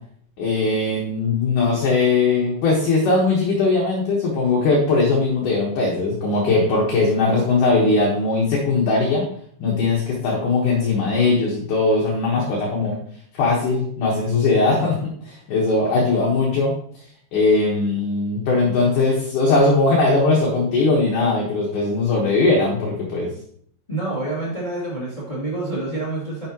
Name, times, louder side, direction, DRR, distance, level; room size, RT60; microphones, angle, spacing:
voice 1, 0.4-9.3 9.6-13.0 13.3-16.8 17.3-23.3, left 3 dB, 65° left, -3 dB, 2.2 m, -20 dB
voice 2, 23.9-26.5, right 2 dB, 25° left, -6 dB, 1.1 m, -27 dB
9.6 x 6.6 x 2.9 m, 0.62 s
omnidirectional pair, 4.9 m